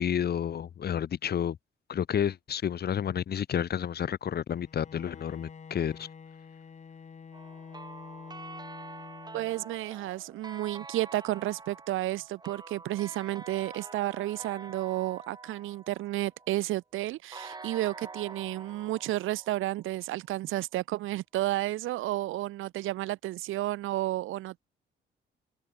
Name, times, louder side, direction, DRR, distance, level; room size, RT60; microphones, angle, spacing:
voice 1, 0.0-1.6 1.9-6.1, left 9 dB, 55° left, 1.5 m, -30 dB
Bowed string instrument, 4.6-9.9, left 6 dB, 35° left, 1.3 m, -48 dB
sound 1, 7.3-16.5 17.3-20.2, right 3 dB, 20° right, 1.2 m, -47 dB
voice 2, 9.3-24.6, right 16 dB, 85° right, 1.4 m, -32 dB
cardioid pair, 90°, 20 cm